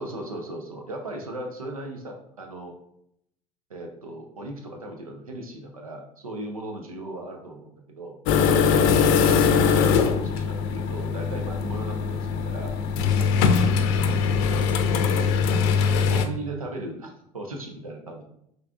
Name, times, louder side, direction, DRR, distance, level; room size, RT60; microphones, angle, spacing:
voice 1, 0.0-2.7 3.7-8.2 8.5-8.9 9.2-12.7 13.2-13.5 14.4-14.9 15.5-18.2, right 2 dB, 90° right, 2 dB, 0.7 m, -37 dB
sound 1, 8.3-16.2, left 6 dB, 55° left, 0.5 m, -21 dB
5.5 x 3.7 x 2.4 m, 0.75 s
figure-of-eight pair, 65°, 18 cm